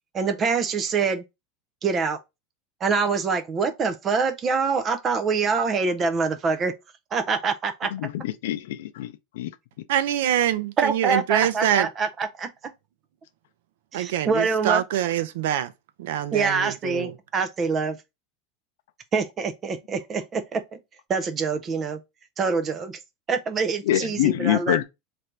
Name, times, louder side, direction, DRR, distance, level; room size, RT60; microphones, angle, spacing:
voice 1, 0.1-1.2 1.8-2.2 2.8-6.7 7.1-7.9 10.8-12.7 13.9-14.8 16.3-18.0 19.1-20.8 21.1-22.0 22.4-23.0 23.3-24.8, right 5 dB, 20° right, 0.5 m, -25 dB
voice 2, 7.9-9.5 23.9-24.8, left 13 dB, 80° left, 0.5 m, -25 dB
voice 3, 9.9-11.9 13.9-15.7 16.0-17.1, right 11 dB, 75° right, 0.5 m, -25 dB
3.2 x 2.6 x 4.4 m
supercardioid pair, 175°, 0 cm